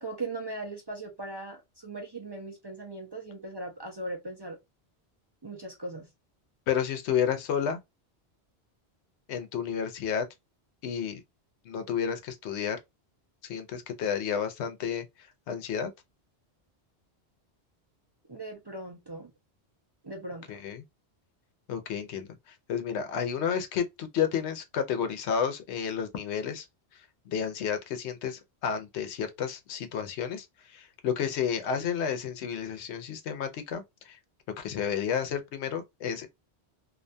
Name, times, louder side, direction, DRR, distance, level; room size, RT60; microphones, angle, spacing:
voice 1, 0.0-4.6 5.4-6.1 18.3-19.3 20.0-20.6, right 2 dB, 30° right, 0.5 m, -39 dB
voice 2, 6.7-7.8 9.3-10.2 10.8-11.2 11.7-12.8 13.5-15.0 15.5-15.9 20.5-20.8 21.7-26.7 27.3-34.2 34.6-36.3, left 7 dB, 90° left, 0.9 m, -31 dB
2.6 x 2.2 x 2.5 m
omnidirectional pair, 1.1 m